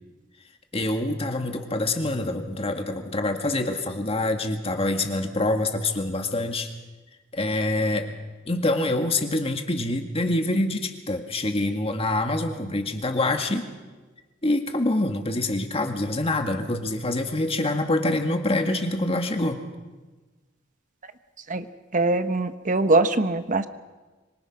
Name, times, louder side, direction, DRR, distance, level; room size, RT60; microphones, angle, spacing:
voice 1, 0.7-6.7 7.3-8.1 8.5-13.7 14.4-19.6, left 2 dB, 30° left, 5 dB, 2.0 m, -25 dB
voice 2, 21.9-23.7, right 2 dB, 40° right, 11 dB, 1.1 m, -22 dB
25.5 x 23.0 x 6.1 m, 1.3 s
head